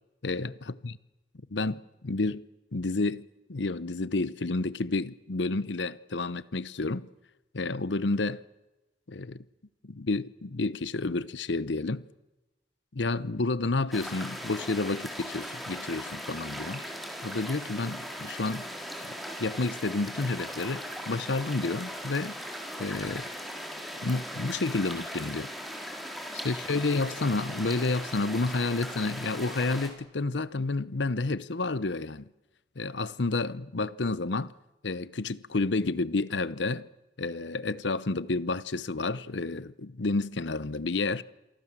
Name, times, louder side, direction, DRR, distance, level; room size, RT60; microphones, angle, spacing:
voice 1, 0.2-1.0 1.5-2.4 2.7-3.2 3.5-7.1 7.5-8.4 9.1-9.4 9.8-12.0 12.9-16.8 17.2-18.7 19.4-22.4 22.8-23.3 24.0-25.5 26.4-32.3 32.8-34.5 34.8-36.9 37.2-41.2, left 3 dB, 80° left, 0.9 m, -30 dB
sound 1, 13.9-29.9, equal, ahead, 4.1 m, -39 dB
28.0 x 23.5 x 7.5 m
head